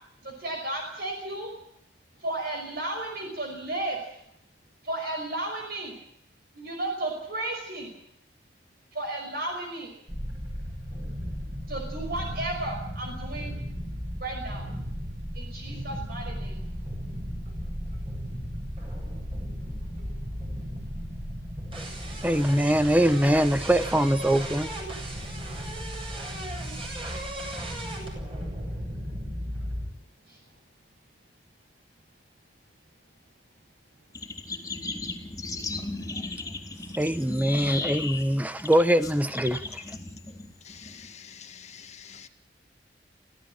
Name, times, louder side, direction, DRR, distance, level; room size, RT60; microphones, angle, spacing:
voice 1, 0.2-1.5 2.2-4.2 4.8-5.9 6.5-7.9 8.9-9.9 11.7-13.5 14.2-14.7 15.3-16.6 30.3-30.4, right 2 dB, 60° right, 5.7 m, -33 dB
sound 1, 10.1-29.9, equal, 30° right, 7.9 m, -35 dB
voice 2, 22.2-24.7 37.0-39.6, right 1 dB, 10° right, 1.0 m, -23 dB
sound 2, 34.1-41.1, left 3 dB, 20° left, 3.6 m, -36 dB
voice 3, 40.6-42.3, left 8 dB, 40° left, 2.0 m, -47 dB
25.5 x 16.0 x 9.0 m
head